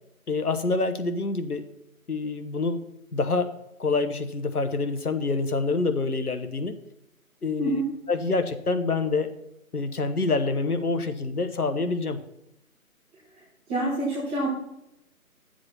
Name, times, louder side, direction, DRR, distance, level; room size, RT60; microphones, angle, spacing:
voice 1, 0.3-1.7 2.1-2.8 3.1-3.5 3.8-6.7 7.4-7.8 8.1-9.3 9.7-12.2, left 3 dB, 90° left, 9 dB, 1.2 m, -26 dB
voice 2, 13.7-14.5, right 1 dB, 5° right, -10 dB, 0.9 m, -27 dB
11.5 x 7.7 x 4.3 m, 0.83 s
figure-of-eight pair, 155°, 44 cm